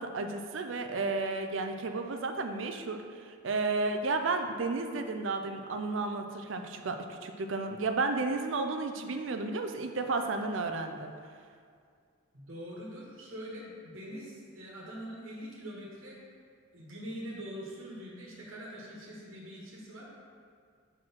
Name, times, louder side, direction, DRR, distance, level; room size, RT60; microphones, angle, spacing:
voice 1, 0.0-11.1, right 3 dB, 70° right, 6 dB, 0.5 m, -32 dB
voice 2, 12.3-16.2 16.7-20.1, equal, 85° right, -4 dB, 1.4 m, -43 dB
4.5 x 4.4 x 5.9 m, 2.2 s
head